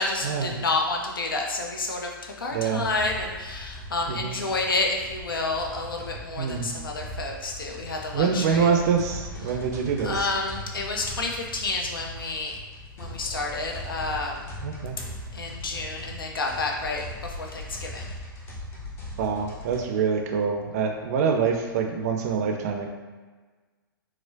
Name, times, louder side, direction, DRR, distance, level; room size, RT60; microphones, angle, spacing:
voice 1, 0.0-8.7 9.5-9.6 10.0-12.6 13.0-14.5 15.3-18.1, left 3 dB, 70° left, 1 dB, 0.6 m, -29 dB
voice 2, 2.5-2.8 4.1-4.4 6.4-6.7 8.1-10.3 14.6-15.0 19.2-22.9, right 6 dB, 45° right, 3 dB, 0.5 m, -25 dB
sound 1, 2.8-19.8, left 1 dB, 20° left, 0.6 m, -40 dB
4.4 x 2.0 x 2.6 m, 1.4 s
figure-of-eight pair, 105°, 12 cm